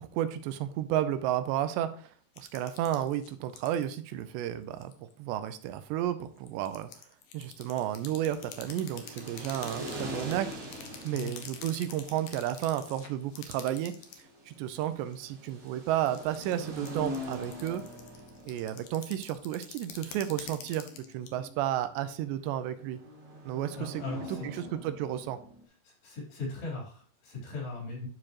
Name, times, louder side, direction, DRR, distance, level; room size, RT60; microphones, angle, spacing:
voice 1, 0.0-2.1 2.4-6.9 7.3-10.5 11.0-13.9 14.5-17.8 18.5-20.9 21.1-23.0 23.4-24.0 24.3-25.4, right 12 dB, 85° right, 11 dB, 2.8 m, -32 dB
sound 1, 2.4-3.9 4.2-4.4 4.8-5.1 5.4-5.5 6.3-14.2 14.5-15.1 15.7-21.3, left 8 dB, 90° left, 1.8 m, -47 dB
sound 2, 7.7-25.6, equal, 60° right, 1.1 m, -44 dB
voice 2, 23.8-24.7 25.8-28.1, left 3 dB, 70° left, -3 dB, 5.5 m, -39 dB
11.5 x 4.9 x 3.0 m, 0.43 s
omnidirectional pair, 5.0 m